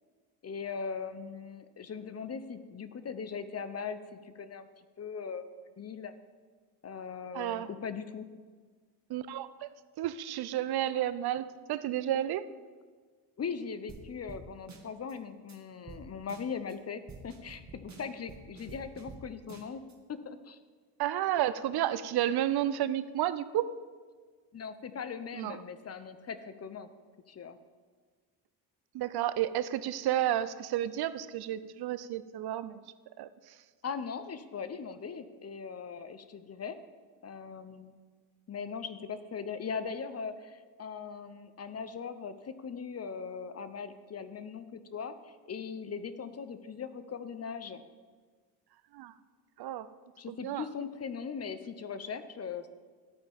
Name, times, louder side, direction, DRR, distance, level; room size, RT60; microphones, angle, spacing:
voice 1, 0.4-4.7 5.0-6.1 6.8-8.3 13.4-19.8 20.1-20.6 24.5-26.9 27.3-27.6 33.8-36.8 37.2-37.9 38.5-47.8 50.2-52.7, left 6 dB, 35° left, 11 dB, 0.8 m, -40 dB
voice 2, 7.3-7.7 9.1-12.5 21.0-23.7 25.3-25.6 28.9-32.8 33.2-33.6 48.9-49.1 49.6-49.9 50.3-50.6, right 12 dB, 60° right, 14 dB, 0.6 m, -31 dB
sound 1, 13.9-14.0 14.3-14.4 14.7-15.1 15.5-15.6 15.9-16.0 16.3-16.7 17.1-19.2 19.5-19.9, right 5 dB, 40° right, 1.7 m, -48 dB
12.5 x 8.7 x 3.6 m, 1.5 s
supercardioid pair, 65°, 45 cm